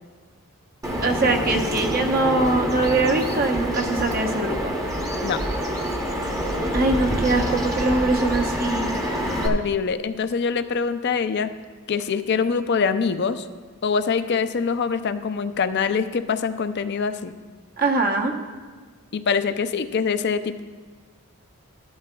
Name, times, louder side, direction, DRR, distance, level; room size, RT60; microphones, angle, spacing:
Bird vocalization bird call bird song, 0.8-9.5, equal, 15° right, 0.9 m, -26 dB
voice 1, 1.0-4.7 6.7-9.0 17.8-18.3, right 2 dB, 40° right, 3 dB, 0.9 m, -22 dB
voice 2, 9.4-11.5 11.9-13.5 13.8-17.3 19.1-20.6, left 5 dB, 50° left, 10 dB, 0.4 m, -24 dB
13.5 x 12.0 x 2.3 m, 1.5 s
head